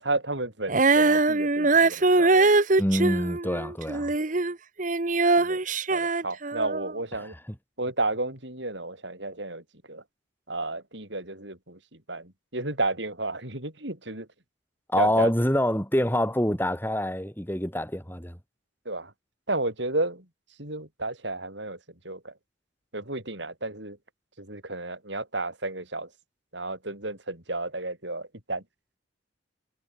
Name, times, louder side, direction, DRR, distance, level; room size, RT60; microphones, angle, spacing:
voice 1, 0.0-2.5 5.4-5.6 5.9-7.3 7.8-10.0 10.5-14.3 15.0-15.3 18.9-19.1 19.5-20.3 20.6-21.8 22.0-22.3 22.9-24.0 24.4-26.1 26.5-28.6, right 2 dB, 65° right, 7.6 m, -32 dB
Female singing, 0.7-4.5 4.8-6.9, right 3 dB, 40° right, 1.1 m, -22 dB
voice 2, 2.8-4.1 7.2-7.3 14.9-18.4, left 1 dB, 10° left, 3.6 m, -26 dB
head